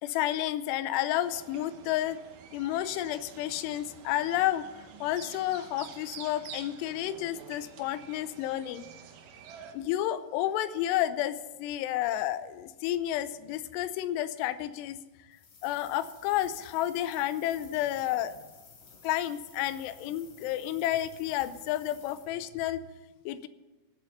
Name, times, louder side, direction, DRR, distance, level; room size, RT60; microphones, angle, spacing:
voice 1, 0.0-2.2 2.5-8.9 9.7-15.0 15.6-18.3 19.0-22.8 23.3-23.5, left 13 dB, 85° left, 14 dB, 2.7 m, -31 dB
sound 1, 1.2-9.7, right 7 dB, 70° right, 2.1 m, -49 dB
sound 2, 15.3-22.3, left 5 dB, 65° left, 4.5 m, -54 dB
17.0 x 7.7 x 5.5 m, 1.1 s
omnidirectional pair, 4.9 m